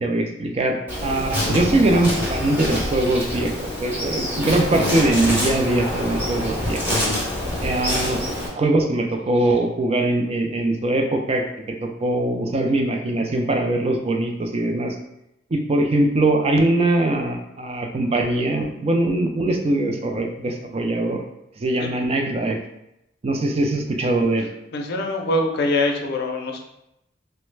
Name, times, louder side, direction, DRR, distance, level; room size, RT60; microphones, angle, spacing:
voice 1, 0.0-6.8 7.6-8.2 8.6-14.9 15.5-21.2 21.6-22.6 23.2-24.5, right 2 dB, 30° right, 3 dB, 0.4 m, -22 dB
Insect, 0.9-8.5, left 1 dB, 10° right, 0.8 m, -25 dB
voice 2, 24.7-26.6, left 2 dB, 60° left, 2 dB, 0.5 m, -23 dB
3.1 x 2.1 x 3.2 m, 0.84 s
head